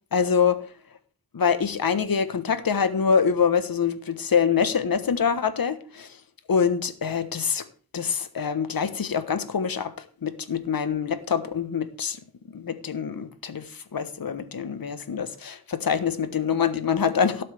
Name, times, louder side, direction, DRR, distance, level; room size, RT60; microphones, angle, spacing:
voice 1, 0.1-0.6 1.3-6.1 6.5-7.6 7.9-12.2 12.5-17.4, left 6 dB, 60° left, 1.3 m, -25 dB
17.5 x 7.5 x 3.5 m
cardioid pair, 70°, 39 cm